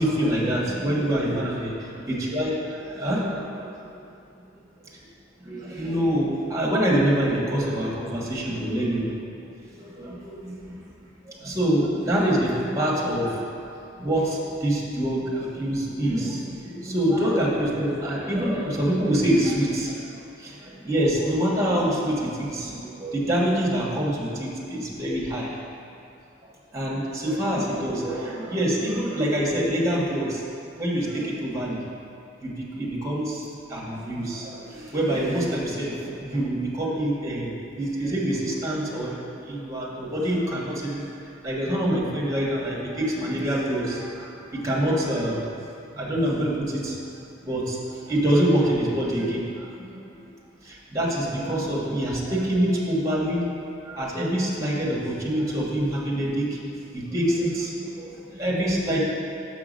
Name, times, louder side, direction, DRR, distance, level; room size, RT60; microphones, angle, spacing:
voice 1, 0.0-1.7 2.1-4.0 4.9-5.0 5.4-9.1 9.7-10.8 11.3-13.6 14.0-20.1 20.4-25.5 26.7-30.4 30.8-31.8 32.4-41.0 41.4-45.5 45.9-47.0 47.4-50.2 50.6-56.6 56.9-59.0, right 1 dB, 20° right, -4 dB, 1.4 m, -26 dB
6.1 x 5.9 x 5.1 m, 2.6 s
head